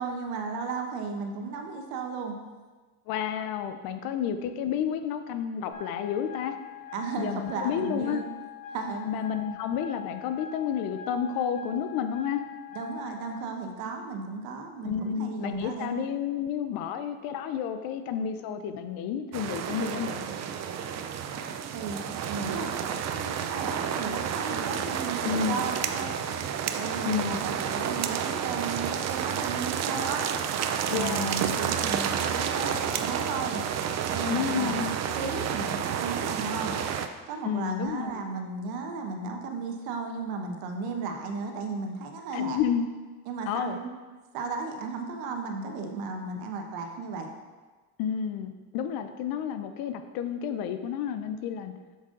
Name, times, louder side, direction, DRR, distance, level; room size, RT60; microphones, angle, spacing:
voice 1, 0.0-2.4 3.9-4.1 6.9-8.3 8.7-9.1 12.7-16.0 21.1-26.1 26.7-30.2 30.9-33.6 34.1-34.8 35.1-36.7 37.3-42.6 43.3-43.9 44.3-47.3, right 4 dB, 80° right, 4 dB, 1.2 m, -35 dB
voice 2, 3.1-6.6 7.2-8.2 9.0-12.5 14.8-20.3 25.2-25.7 27.0-27.4 30.9-31.3 34.2-34.9 37.4-38.2 42.3-42.8 43.5-43.8 48.0-51.7, left 8 dB, 75° left, 9 dB, 0.8 m, -30 dB
sound 1, 5.7-13.3, left 9 dB, 25° left, 2.7 m, -43 dB
sound 2, 19.3-37.1, right 8 dB, 50° right, 0.6 m, -30 dB
7.5 x 7.1 x 3.9 m, 1.3 s
cardioid pair, 110°, 36 cm